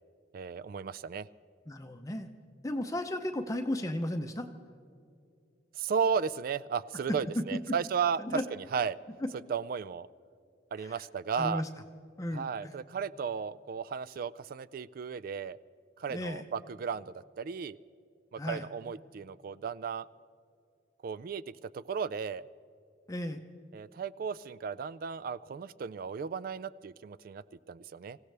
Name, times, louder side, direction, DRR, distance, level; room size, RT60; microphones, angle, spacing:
voice 1, 0.3-1.3 5.7-9.0 9.5-10.1 10.7-11.6 12.3-15.6 16.0-17.8 18.3-20.1 21.0-21.4 21.7-22.4 23.7-28.2, right 6 dB, 50° right, 18 dB, 0.3 m, -34 dB
voice 2, 1.7-2.3 2.6-4.5 7.1-7.2 8.2-8.4 9.2-9.3 10.8-11.0 11.4-11.7 12.2-12.5 16.1-16.4 18.4-18.7 23.1-23.4, left 1 dB, 20° left, 5 dB, 0.6 m, -34 dB
25.5 x 16.0 x 3.4 m, 2.5 s
head